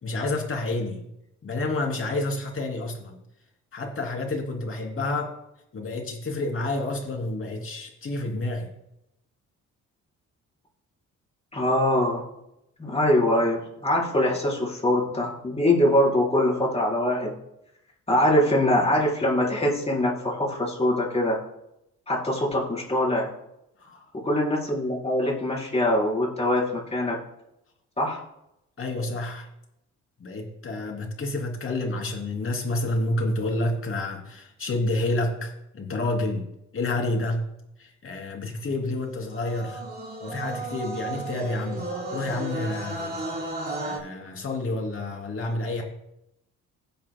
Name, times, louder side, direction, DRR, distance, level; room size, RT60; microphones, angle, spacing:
voice 1, 0.0-1.0 1.4-3.2 3.7-5.3 5.7-8.7 23.8-24.1 28.8-29.5 30.2-37.5 37.8-39.8 40.2-41.8 42.1-43.2 43.8-45.8, left 2 dB, 45° left, 1 dB, 3.0 m, -29 dB
voice 2, 11.5-12.2 12.8-17.3 18.1-21.4 22.1-23.3 24.1-27.2 28.0-28.2, left 1 dB, 20° left, -3 dB, 4.4 m, -23 dB
sound 1, 39.3-44.0, right 2 dB, 30° right, 4.1 m, -34 dB
16.5 x 8.8 x 2.3 m, 0.83 s
cardioid pair, 90°, 30 cm